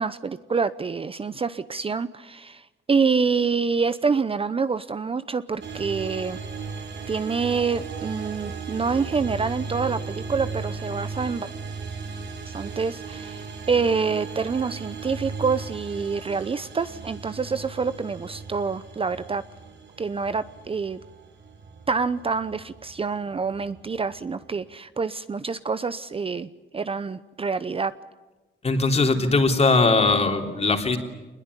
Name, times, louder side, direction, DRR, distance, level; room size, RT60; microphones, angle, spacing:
voice 1, 0.0-6.4 7.1-11.5 12.5-19.4 20.0-21.0 21.9-27.9, right 5 dB, 30° right, 13 dB, 0.8 m, -27 dB
sound 1, 5.6-24.7, right 5 dB, 60° right, 3.7 m, -37 dB
voice 2, 28.6-31.0, left 3 dB, 30° left, 4 dB, 3.5 m, -20 dB
24.5 x 21.0 x 9.9 m, 1.1 s
cardioid pair, 90°, 20 cm